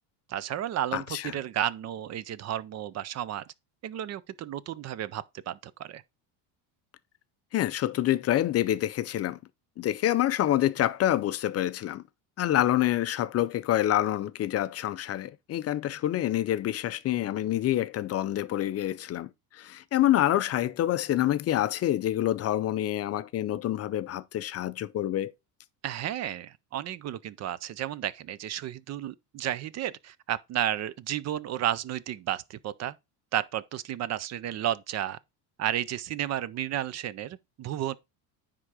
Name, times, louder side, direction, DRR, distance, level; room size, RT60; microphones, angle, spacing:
voice 1, 0.3-3.4 3.8-6.0 25.8-33.0 33.3-35.2 35.6-38.0, right 11 dB, 35° right, 0.4 m, -32 dB
voice 2, 0.9-1.3 7.5-9.4 9.8-12.0 12.4-25.3, left 13 dB, 35° left, 0.4 m, -27 dB
9.7 x 3.8 x 4.8 m
cardioid pair, 135°, 47 cm